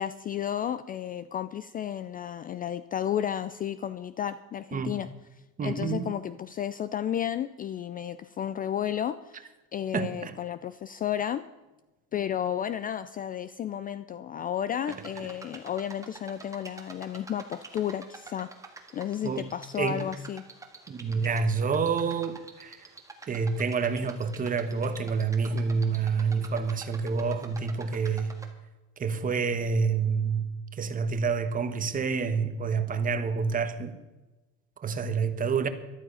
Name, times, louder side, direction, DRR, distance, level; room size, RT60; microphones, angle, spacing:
voice 1, 0.0-5.1 5.6-11.4 12.1-18.5 18.9-20.4, left 10 dB, 25° left, 0.4 m, -32 dB
voice 2, 5.6-6.1 9.9-10.3 19.2-19.4 19.7-20.0 20.9-22.8 23.3-28.3 29.0-30.5 30.8-34.0 34.8-35.7, right 5 dB, 25° right, 1.2 m, -28 dB
sound 1, 14.9-28.5, right 3 dB, 10° right, 1.6 m, -48 dB
13.5 x 12.0 x 5.6 m
cardioid pair, 140°, 32 cm